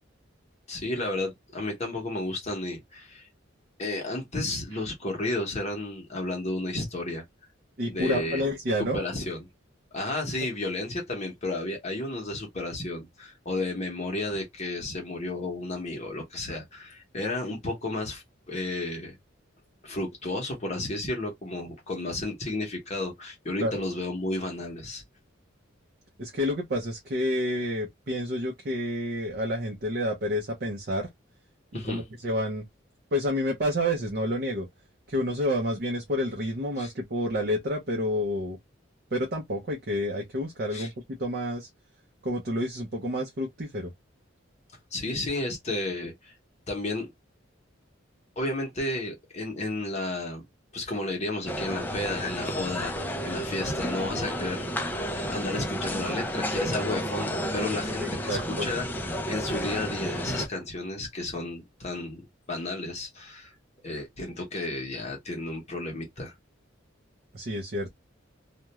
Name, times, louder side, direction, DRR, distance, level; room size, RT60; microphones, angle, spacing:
voice 1, 0.7-3.3 3.8-7.2 7.9-8.4 8.9-9.4 9.9-19.1 19.8-25.0 31.7-32.0 36.8-36.9 40.7-40.9 44.9-46.3 46.7-47.1 48.4-50.4 50.7-58.9 59.3-62.2 62.5-63.5 63.8-66.3, left 2 dB, 35° left, 0.8 m, -32 dB
voice 2, 7.8-9.0 23.6-23.8 26.2-31.1 31.7-32.6 33.1-34.7 35.1-38.6 39.1-41.7 42.2-43.9 45.3-45.4 58.0-58.7 67.3-68.0, equal, 50° right, 0.6 m, -29 dB
sound 1, 51.5-60.5, equal, 10° left, 0.3 m, -31 dB
2.3 x 2.2 x 2.8 m
head